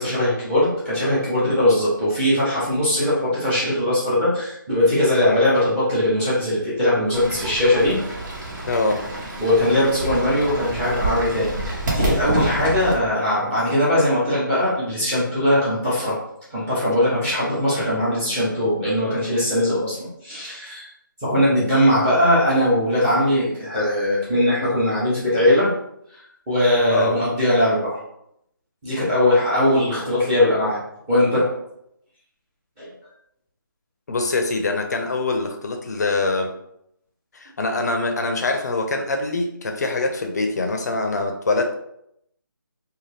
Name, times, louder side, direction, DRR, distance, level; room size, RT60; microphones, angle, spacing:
voice 1, 0.0-8.0 9.4-16.2 16.5-20.9 21.2-25.7 26.5-28.0 28.8-30.8 31.1-31.5 32.8-32.9, left 1 dB, 15° right, -9 dB, 0.8 m, -20 dB
Fowl / Bird, 7.1-12.9, right 1 dB, 55° right, 1.0 m, -28 dB
voice 2, 8.7-9.0 26.9-27.2 34.1-36.5 37.3-41.7, left 3 dB, 50° left, 4 dB, 0.4 m, -24 dB
2.6 x 2.2 x 3.3 m, 0.76 s
figure-of-eight pair, 160°, 11 cm